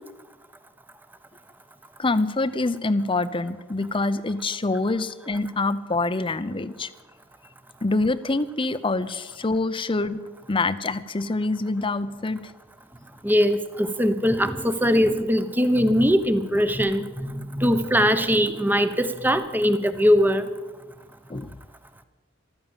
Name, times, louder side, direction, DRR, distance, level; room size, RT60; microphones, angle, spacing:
voice 1, 2.0-6.9 7.8-10.2 10.5-12.5 21.3-21.6, left 2 dB, 25° left, 14 dB, 0.7 m, -25 dB
voice 2, 13.2-20.4, equal, 10° right, 11 dB, 1.0 m, -21 dB
14.5 x 13.5 x 7.3 m, 1.2 s
head